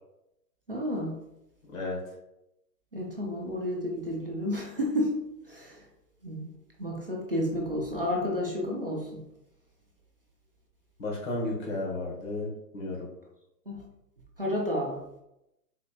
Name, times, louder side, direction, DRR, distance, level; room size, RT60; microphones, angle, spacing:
voice 1, 0.7-1.1 2.9-5.2 5.5-5.8 6.2-6.5 6.8-9.2 13.7-13.8 14.4-15.0, left 1 dB, 40° right, -3 dB, 0.4 m, -31 dB
voice 2, 11.0-13.0, left 2 dB, 55° left, -3 dB, 1.2 m, -33 dB
4.2 x 2.8 x 2.3 m, 0.87 s
hypercardioid pair, 170°, 48 cm